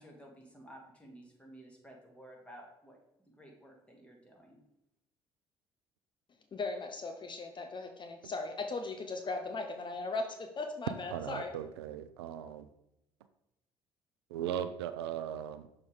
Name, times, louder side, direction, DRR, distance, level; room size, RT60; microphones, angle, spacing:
voice 1, 0.0-3.0 3.4-4.6, right 1 dB, 10° left, 0 dB, 2.1 m, -54 dB
voice 2, 6.5-11.5, left 3 dB, 35° left, 6 dB, 0.8 m, -38 dB
voice 3, 11.1-12.7 14.3-15.7, right 10 dB, 85° right, 11 dB, 0.4 m, -38 dB
6.3 x 3.6 x 4.7 m, 0.84 s
hypercardioid pair, 55°, 13 cm